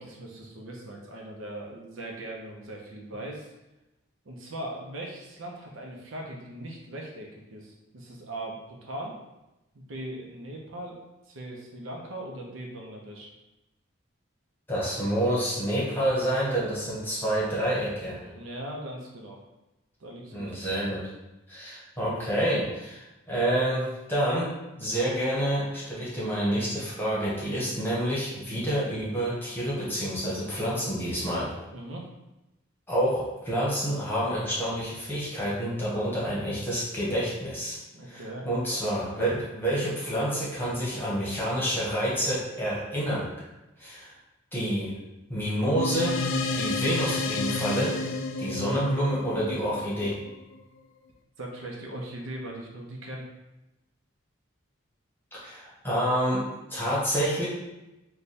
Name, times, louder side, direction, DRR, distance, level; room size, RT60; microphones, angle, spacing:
voice 1, 0.0-3.5 4.2-9.2 9.7-11.0 11.3-13.3 18.2-19.4 20.0-20.5 31.7-32.1 37.9-38.8 51.4-53.2, right 1 dB, 75° right, -1 dB, 0.7 m, -39 dB
voice 2, 14.7-18.2 20.3-21.1 21.5-31.5 32.9-37.8 38.1-43.3 43.8-44.1 44.5-44.9 45.3-46.2 46.5-48.0 48.4-50.2 55.3-57.5, equal, 10° left, -7 dB, 1.0 m, -28 dB
sound 1, 45.8-50.6, left 3 dB, 70° left, 0.4 m, -30 dB
3.3 x 2.3 x 4.1 m, 0.98 s
head